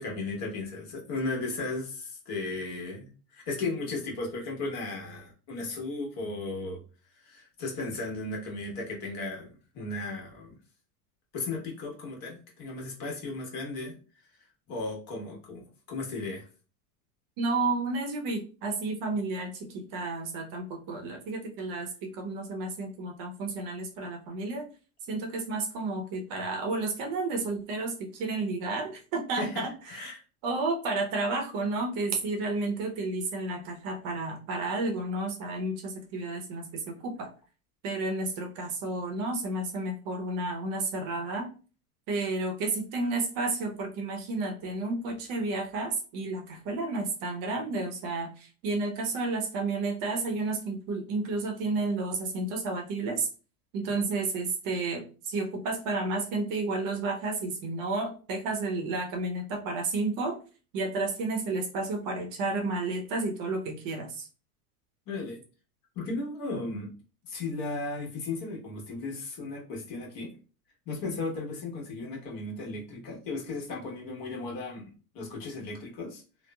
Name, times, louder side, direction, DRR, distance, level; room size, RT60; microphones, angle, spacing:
voice 1, 0.0-6.8 7.2-10.6 11.3-13.9 14.7-16.5 29.4-30.2 65.1-65.4 65.9-66.9 67.3-70.3 70.9-76.2, left 3 dB, 50° left, -1 dB, 1.2 m, -35 dB
voice 2, 17.4-24.6 25.1-30.0 30.4-37.3 37.8-41.5 42.1-53.3 53.7-60.4 60.7-64.3, right 3 dB, 50° right, 3 dB, 0.7 m, -31 dB
2.9 x 2.0 x 2.2 m, 0.36 s
hypercardioid pair, 105°, 46 cm